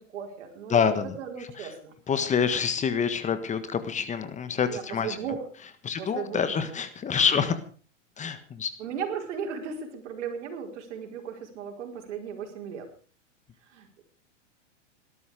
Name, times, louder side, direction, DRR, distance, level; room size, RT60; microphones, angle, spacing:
voice 1, 0.0-0.8 1.2-1.9 4.7-5.5 6.0-6.8 7.2-7.5 8.8-12.9 13.6-14.0, right 7 dB, 70° right, 4 dB, 5.0 m, -36 dB
voice 2, 0.7-1.1 2.1-5.1 5.8-7.5 8.2-8.7, left 6 dB, 20° left, 11 dB, 1.5 m, -26 dB
19.5 x 12.5 x 5.1 m, 0.41 s
hypercardioid pair, 125°, 37 cm